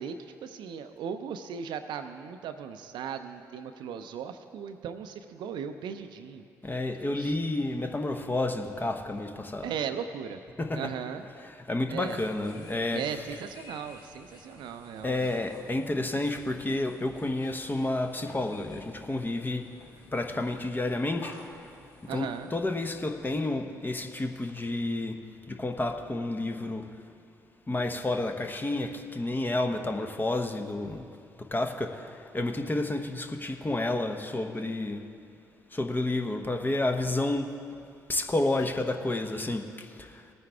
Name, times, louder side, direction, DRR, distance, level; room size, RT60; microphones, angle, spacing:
voice 1, 0.0-6.4 7.2-7.3 9.6-10.4 10.7-11.2 11.9-12.2 12.9-15.3 22.1-22.5, right 7 dB, 60° right, 8 dB, 0.6 m, -37 dB
voice 2, 6.6-9.7 10.6-10.9 11.7-13.0 15.0-19.7 20.1-21.4 22.0-25.2 25.5-26.9 27.7-31.0 31.4-35.0 35.7-37.5 38.1-40.2, left 2 dB, 20° left, 5 dB, 1.0 m, -30 dB
sound 1, 12.1-23.4, left 2 dB, 55° left, 1.6 m, -52 dB
18.5 x 9.4 x 3.5 m, 2.5 s
figure-of-eight pair, 40°, 9 cm